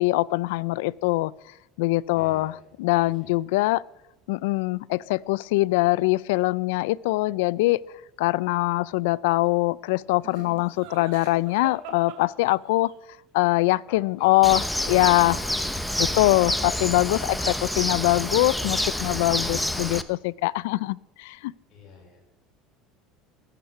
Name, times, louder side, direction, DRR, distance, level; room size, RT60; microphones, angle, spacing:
voice 1, 0.0-1.3 1.8-2.5 2.8-3.8 4.3-7.8 8.2-12.9 13.3-14.6 14.9-15.3 16.0-21.5, left 20 dB, 90° left, 22 dB, 0.4 m, -23 dB
voice 2, 2.1-2.7 3.0-3.4 10.8-10.9 13.9-15.5 21.7-22.2, left 4 dB, 50° left, -1 dB, 5.3 m, -47 dB
Laughter, 10.2-12.9 15.7-16.5 16.8-17.3, right 8 dB, 75° right, 2.7 m, -44 dB
Bird, 14.4-20.0, left 1 dB, 5° left, 0.7 m, -28 dB
19.0 x 8.2 x 5.8 m, 0.94 s
cardioid pair, 140°, 0 cm